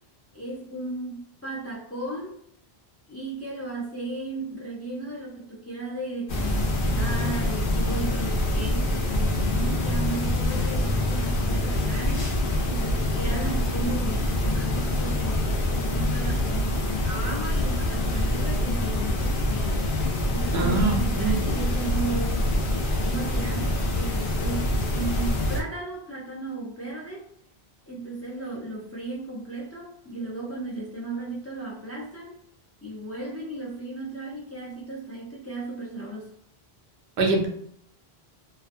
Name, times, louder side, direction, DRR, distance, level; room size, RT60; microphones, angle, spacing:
voice 1, 0.3-2.4 3.1-16.7 17.0-19.8 20.3-22.5 23.0-27.3 27.9-32.4 32.8-36.3, right 2 dB, 20° left, 0.5 m, -35 dB
sound 1, 6.3-25.6, left 1 dB, 60° left, 0.7 m, -25 dB
voice 2, 20.5-21.4 37.2-37.5, right 3 dB, 80° right, 0.9 m, -24 dB
2.5 x 2.2 x 2.5 m
omnidirectional pair, 1.1 m